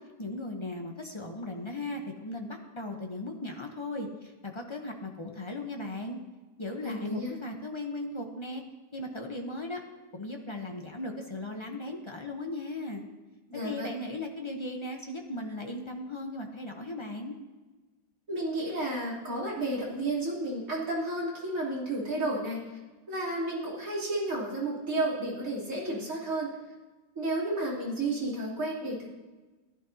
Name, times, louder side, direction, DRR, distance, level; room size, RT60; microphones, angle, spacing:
voice 1, 0.2-6.2 6.6-8.6 8.9-9.8 10.1-13.0 13.6-17.4, left 1 dB, 40° left, 2 dB, 0.4 m, -37 dB
voice 2, 6.8-7.3 13.5-13.9 18.3-22.6 23.1-26.5 27.2-29.1, right 1 dB, 40° right, -6 dB, 3.6 m, -32 dB
15.5 x 11.0 x 2.8 m, 1.2 s
omnidirectional pair, 2.2 m